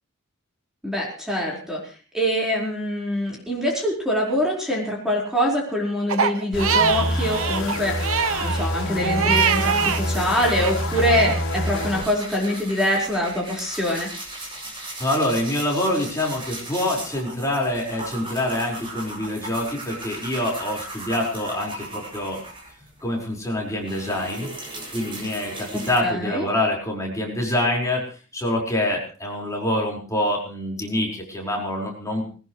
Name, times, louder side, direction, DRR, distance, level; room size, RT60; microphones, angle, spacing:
voice 1, 0.8-14.1 25.7-26.5, equal, ahead, -3 dB, 4.8 m, -24 dB
Crying sobbing, 6.1-10.0 10.4-11.4, right 6 dB, 65° right, 0.9 m, -24 dB
sound 1, 6.5-12.1, left 1 dB, 55° left, 4.9 m, -26 dB
sound 2, 9.3-23.1 23.4-26.0, right 2 dB, 25° right, 7.4 m, -37 dB
voice 2, 15.0-22.4 23.0-24.5 24.9-28.0 28.3-32.2, left 1 dB, 15° left, -2 dB, 5.0 m, -25 dB
21.0 x 20.0 x 3.3 m, 0.38 s
head